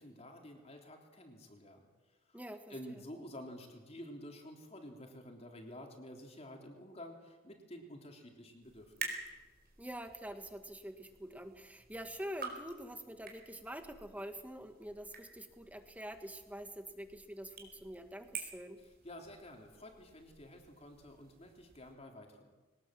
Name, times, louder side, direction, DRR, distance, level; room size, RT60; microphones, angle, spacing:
voice 1, 0.0-1.9 2.3-2.4 2.7-9.2 19.0-22.5, left 1 dB, 30° left, 2 dB, 3.5 m, -50 dB
voice 2, 2.3-3.0 9.8-18.8, equal, 10° right, 7 dB, 1.7 m, -46 dB
sound 1, 8.6-21.9, right 5 dB, 50° right, 4.4 m, -50 dB
23.0 x 19.5 x 7.7 m, 1.3 s
head